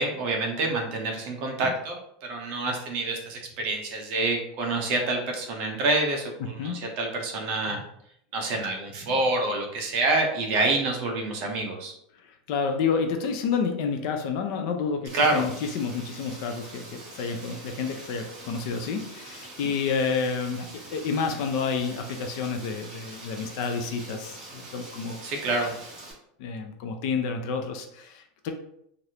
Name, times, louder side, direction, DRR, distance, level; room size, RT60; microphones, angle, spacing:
voice 1, 0.0-2.0 2.3-7.8 8.3-11.9 15.1-15.4 25.2-25.7, right 2 dB, 35° right, 1 dB, 0.6 m, -27 dB
voice 2, 12.3-25.2 26.4-28.5, left 5 dB, 40° left, 5 dB, 0.4 m, -29 dB
Rain, 15.1-26.1, right 2 dB, 20° right, 1.1 m, -44 dB
3.2 x 2.5 x 2.8 m, 0.73 s
supercardioid pair, 180°, 4 cm